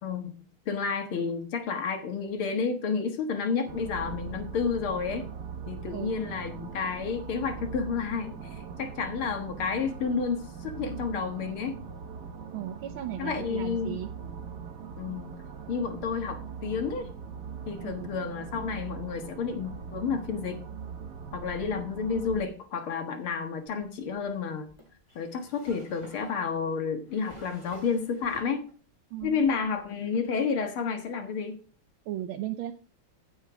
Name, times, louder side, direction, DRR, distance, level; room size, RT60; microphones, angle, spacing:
voice 1, 0.0-5.3 5.7-11.8 13.2-14.0 15.0-15.3 15.7-17.1 17.7-20.6 21.3-24.7 25.2-28.7 29.2-31.6, left 5 dB, 90° left, 6 dB, 2.4 m, -31 dB
sound 1, 3.7-22.4, right 6 dB, 55° right, 1.7 m, -41 dB
voice 2, 12.5-14.1 17.8-18.1 22.0-22.2 29.1-29.8 32.0-32.7, right 12 dB, 75° right, 6 dB, 1.5 m, -36 dB
Drawer open or close, 23.7-28.9 29.2-30.0, equal, 10° left, 7.1 m, -52 dB
15.0 x 5.7 x 4.8 m, 0.38 s
omnidirectional pair, 2.3 m